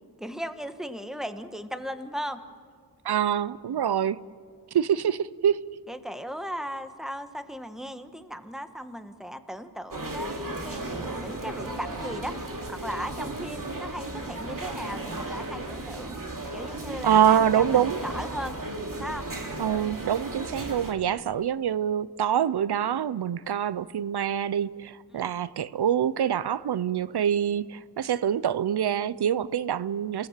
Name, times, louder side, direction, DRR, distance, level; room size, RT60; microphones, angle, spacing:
voice 1, 0.2-2.4 5.9-10.9 11.2-12.3 12.7-16.2 16.5-18.5 19.0-19.3 25.1-25.3, equal, ahead, 1.4 m, -37 dB
voice 2, 3.0-4.2 4.7-5.6 17.0-18.0 19.6-30.3, right 9 dB, 85° right, 0.6 m, -25 dB
sound 1, 9.9-20.9, right 2 dB, 55° right, 2.7 m, -35 dB
27.5 x 17.5 x 7.3 m
wide cardioid pair, 70°, 38 cm